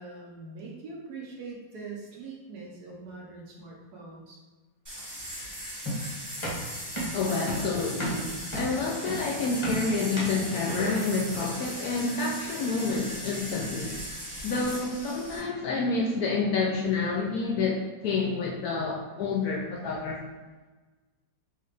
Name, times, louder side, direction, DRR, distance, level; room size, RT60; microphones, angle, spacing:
voice 1, 0.0-4.4, right 3 dB, 65° right, -2 dB, 1.2 m, -42 dB
sound 1, 4.9-15.4, equal, 10° right, 1.3 m, -39 dB
sound 2, 5.9-11.7, right 1 dB, 25° left, 0.6 m, -34 dB
voice 2, 7.1-14.0 14.4-17.8 18.0-20.2, left 4 dB, 70° left, -1 dB, 0.9 m, -28 dB
4.6 x 2.9 x 3.2 m, 1.3 s
omnidirectional pair, 1.9 m